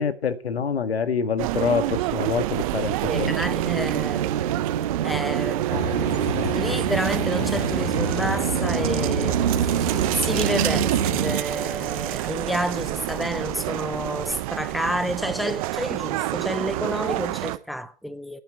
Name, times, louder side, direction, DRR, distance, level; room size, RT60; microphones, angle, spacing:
voice 1, 0.0-3.3 3.7-3.9, left 6 dB, 65° left, 1.9 m, -26 dB
sound 1, 1.4-17.6, right 17 dB, 30° right, 0.9 m, -28 dB
voice 2, 3.1-4.4 5.0-6.1 6.5-18.4, equal, ahead, 0.6 m, -30 dB
sound 2, 3.1-11.4, right 9 dB, 55° right, 1.2 m, -26 dB
sound 3, 5.7-11.4, left 8 dB, 40° left, 1.7 m, -33 dB
20.0 x 9.8 x 4.5 m
figure-of-eight pair, 115°, 33 cm